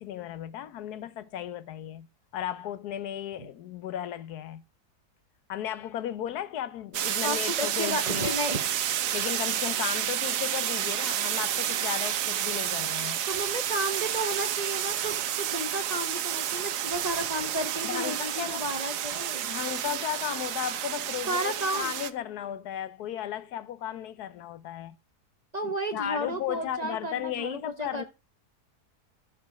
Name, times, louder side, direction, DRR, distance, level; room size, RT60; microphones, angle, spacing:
voice 1, 0.0-2.1 2.3-4.6 5.5-8.4 9.1-13.2 17.8-18.6 19.4-25.0 25.6-28.1, left 11 dB, 80° left, 1.2 m, -35 dB
sound 1, 6.9-22.1, right 11 dB, 85° right, 1.3 m, -30 dB
voice 2, 7.2-8.6 13.3-19.4 21.3-21.9 25.5-28.1, right 1 dB, 30° right, 1.0 m, -32 dB
13.5 x 5.3 x 4.8 m
omnidirectional pair, 1.7 m